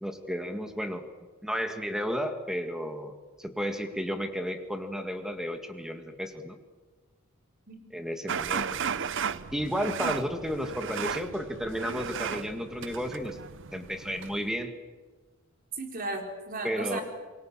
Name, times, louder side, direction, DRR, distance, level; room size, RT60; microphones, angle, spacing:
voice 1, 0.0-1.0 1.4-3.1 3.4-6.6 7.9-8.8 9.5-13.4 13.7-14.7 16.6-17.0, equal, ahead, 6 dB, 2.0 m, -33 dB
sound 1, 8.3-14.6, right 7 dB, 60° right, 0.8 m, -35 dB
voice 2, 15.8-17.0, right 2 dB, 40° right, 3 dB, 4.2 m, -35 dB
27.5 x 23.0 x 7.5 m, 1.4 s
head